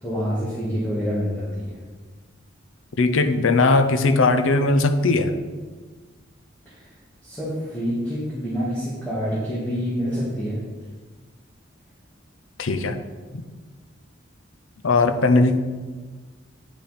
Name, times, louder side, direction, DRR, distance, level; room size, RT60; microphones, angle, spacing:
voice 1, 0.0-1.8 6.7-6.8 7.2-10.6, equal, 10° left, -9 dB, 1.9 m, -27 dB
voice 2, 3.0-5.4 12.6-13.0 13.3-13.4 14.8-15.6, left 3 dB, 90° left, 9 dB, 0.6 m, -19 dB
9.4 x 5.7 x 4.3 m, 1.4 s
head